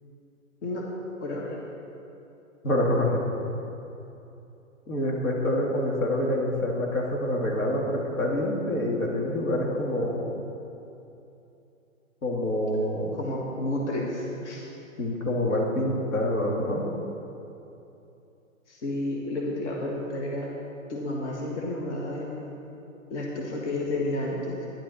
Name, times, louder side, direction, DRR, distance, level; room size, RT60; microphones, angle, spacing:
voice 1, 1.2-1.7 13.1-14.7 18.7-20.5 20.9-22.5 23.1-24.7, left 1 dB, 55° left, -1 dB, 1.7 m, -31 dB
voice 2, 2.6-3.2 4.9-10.2 12.2-13.2 15.0-16.9, left 1 dB, 75° left, -1 dB, 2.7 m, -26 dB
12.0 x 10.5 x 4.4 m, 2.9 s
hypercardioid pair, 160°, 41 cm